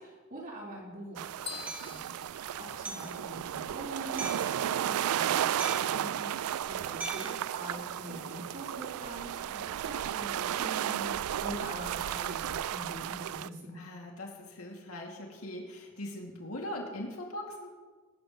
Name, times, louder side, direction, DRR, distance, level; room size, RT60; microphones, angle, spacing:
voice 1, 0.0-6.0 6.6-13.8, right 1 dB, 45° right, -4 dB, 4.3 m, -44 dB
sound 1, 1.2-13.5, right 10 dB, 90° right, 0.3 m, -34 dB
sound 2, 1.5-3.4, left 6 dB, 25° left, 1.2 m, -45 dB
Hammer, 1.7-1.9 2.8-3.2 4.2-4.5 5.6-6.0 7.0-7.4, right 2 dB, 5° right, 1.6 m, -40 dB
voice 2, 5.9-6.4 13.7-17.7, left 1 dB, 85° left, -1 dB, 2.5 m, -41 dB
23.0 x 12.5 x 3.2 m, 1.4 s
head